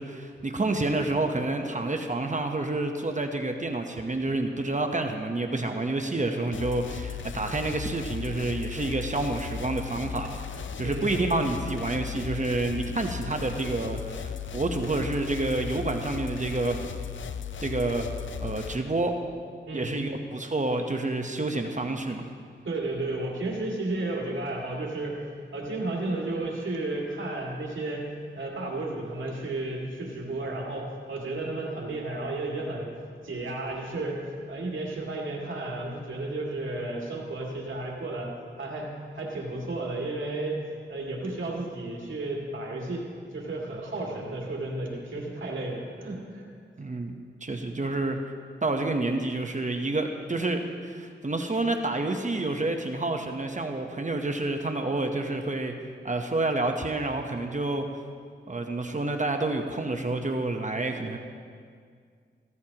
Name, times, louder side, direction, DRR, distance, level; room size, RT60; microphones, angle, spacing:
voice 1, 0.0-16.8 17.6-18.1 18.4-19.2 19.7-22.3 46.8-48.2 48.6-55.7 56.0-57.9 58.5-61.2, right 2 dB, 40° right, 5 dB, 1.0 m, -29 dB
sound 1, 6.5-18.8, left 7 dB, 75° left, 0.5 m, -36 dB
voice 2, 19.7-20.0 22.6-25.2 25.5-28.0 28.3-32.9 33.2-38.3 38.6-40.6 40.9-43.1 43.3-46.5, right 2 dB, 85° right, -2 dB, 2.3 m, -33 dB
15.5 x 15.0 x 2.9 m, 2.1 s
cardioid pair, 45°, 20 cm